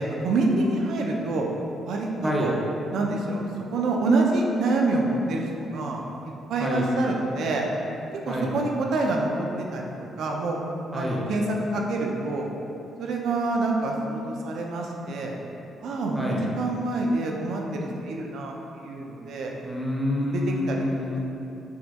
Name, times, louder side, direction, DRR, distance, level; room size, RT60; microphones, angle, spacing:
voice 1, 0.0-1.5 1.8-2.5 2.9-6.0 6.5-7.7 8.3-10.6 10.9-12.5 13.0-15.4 15.8-19.5 20.3-21.0, right 2 dB, 75° right, 0 dB, 0.3 m, -26 dB
voice 2, 10.9-11.2 16.1-16.4 19.6-21.2, left 1 dB, 5° right, -4 dB, 0.5 m, -27 dB
4.1 x 2.2 x 2.3 m, 2.8 s
cardioid pair, 90°, 0 cm